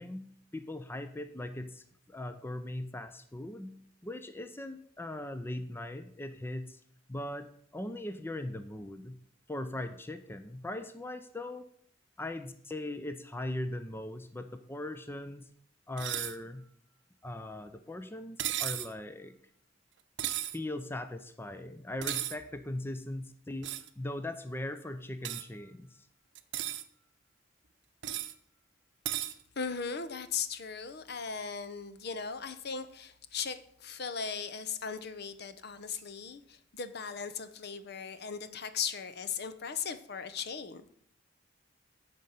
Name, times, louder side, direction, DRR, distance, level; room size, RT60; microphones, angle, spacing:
voice 1, 0.0-3.7 4.0-6.8 7.1-7.5 7.7-9.2 9.5-11.6 12.2-15.5 15.9-16.7 17.2-19.3 20.5-26.1, left 1 dB, 10° left, 9 dB, 0.5 m, -39 dB
sound 1, 16.0-16.4 18.4-18.9 20.2-20.6 22.0-22.4 23.6-23.9 25.2-25.4 26.4-26.8 28.0-28.3 29.1-29.3, right 13 dB, 65° right, 0.7 m, -34 dB
voice 2, 29.6-40.9, left 6 dB, 55° left, 11 dB, 0.8 m, -38 dB
9.7 x 5.3 x 8.1 m, 0.66 s
head